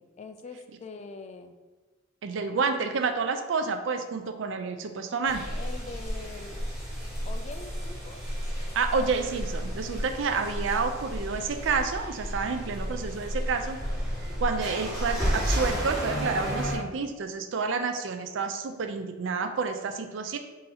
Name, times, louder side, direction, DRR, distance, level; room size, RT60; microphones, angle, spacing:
voice 1, 0.2-1.5 5.6-6.7 7.2-8.2 19.8-20.1, left 4 dB, 35° left, 7 dB, 0.3 m, -43 dB
voice 2, 2.2-5.4 8.7-13.8 14.4-20.4, right 4 dB, 65° right, 7 dB, 0.4 m, -29 dB
sound 1, 5.2-16.7, equal, ahead, 1.3 m, -32 dB
3.8 x 2.7 x 4.1 m, 1.2 s
head